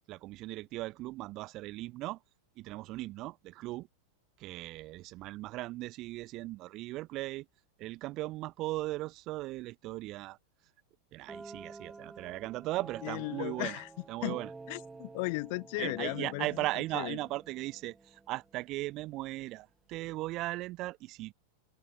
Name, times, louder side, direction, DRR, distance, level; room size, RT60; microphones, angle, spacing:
voice 1, 0.1-2.2 2.6-3.9 4.4-7.5 7.8-10.4 11.1-13.8 14.1-14.5 15.8-21.3, right 18 dB, 40° right, 0.4 m, -38 dB
sound 1, 11.3-19.0, right 3 dB, 10° right, 1.3 m, -50 dB
voice 2, 13.0-14.4 14.7-16.6 16.9-17.2, left 28 dB, 45° left, 1.7 m, -36 dB
open air
figure-of-eight pair, 90°, 0 cm